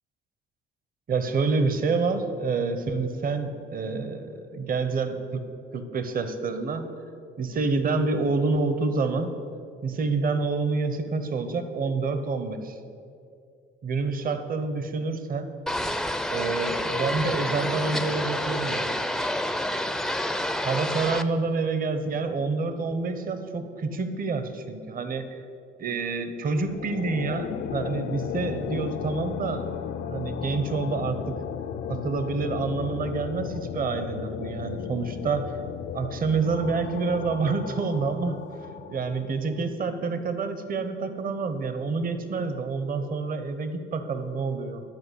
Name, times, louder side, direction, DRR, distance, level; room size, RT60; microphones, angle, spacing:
voice 1, 1.1-5.4 5.7-6.9 7.4-9.4 9.8-12.8 13.8-15.6 16.3-18.9 20.6-25.4 25.8-31.3 31.9-35.6 35.9-38.4 38.9-44.8, right 4 dB, 45° right, 9 dB, 0.8 m, -28 dB
sound 1, 15.7-21.2, left 1 dB, ahead, 0.5 m, -28 dB
sound 2, 26.6-39.7, left 8 dB, 65° left, 0.5 m, -35 dB
10.5 x 4.9 x 8.0 m, 2.5 s
cardioid pair, 90°, 20 cm